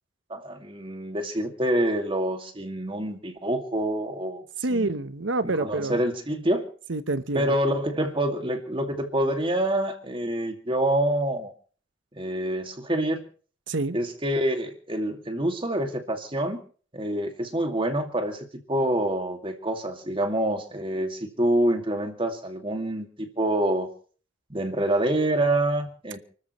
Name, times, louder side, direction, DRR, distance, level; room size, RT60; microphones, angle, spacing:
voice 1, 0.3-4.4 4.7-5.0 5.6-6.7 7.3-11.5 12.2-13.2 13.9-16.6 16.9-23.9 24.5-26.2, right 1 dB, 25° right, 5 dB, 2.2 m, -26 dB
voice 2, 4.6-6.0 6.9-7.5 13.7-14.0, right 2 dB, 70° right, 13 dB, 1.0 m, -27 dB
29.5 x 13.5 x 3.1 m, 0.42 s
head